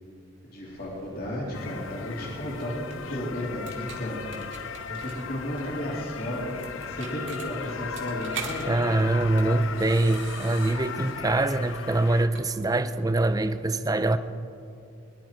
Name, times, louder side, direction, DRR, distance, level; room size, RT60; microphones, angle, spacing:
voice 1, 0.4-4.3 4.9-8.7, left 1 dB, 50° left, 2.9 m, -33 dB
sound 1, 0.7-13.5, right 4 dB, 70° right, 2.3 m, -45 dB
sound 2, 1.5-12.3, left 6 dB, 85° left, 0.6 m, -37 dB
voice 2, 8.7-14.2, right 2 dB, 20° right, 0.5 m, -24 dB
22.0 x 11.5 x 4.5 m
head